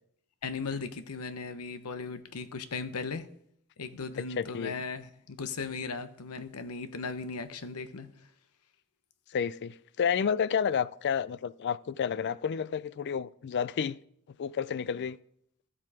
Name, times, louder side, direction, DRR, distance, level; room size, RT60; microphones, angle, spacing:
voice 1, 0.4-3.3 3.8-8.1, left 4 dB, 85° left, 0.8 m, -37 dB
voice 2, 4.2-4.8 9.3-14.0 14.4-15.2, left 7 dB, 50° left, 0.4 m, -30 dB
12.5 x 7.5 x 4.8 m
head